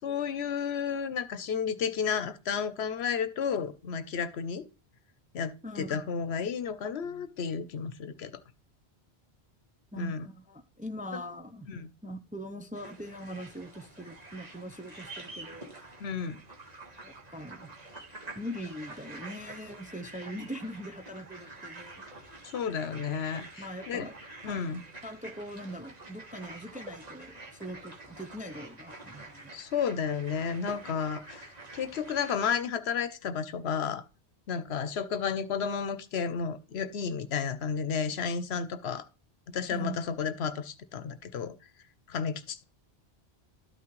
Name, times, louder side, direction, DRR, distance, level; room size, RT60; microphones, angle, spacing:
voice 1, 0.0-4.6 5.3-8.3 10.0-10.3 11.1-11.2 11.7-11.9 16.0-16.4 22.4-24.1 24.4-24.8 29.5-34.0 34.5-39.1 39.5-41.5 42.1-42.6, left 6 dB, 75° left, 1.0 m, -32 dB
voice 2, 9.9-11.7 12.0-15.9 17.0-17.7 18.3-22.2 23.6-24.1 24.5-24.7 25.0-29.5 39.7-40.2, equal, 10° right, 0.5 m, -42 dB
sound 1, 12.7-32.5, right 2 dB, 40° right, 1.6 m, -47 dB
12.5 x 6.0 x 3.2 m
omnidirectional pair, 1.1 m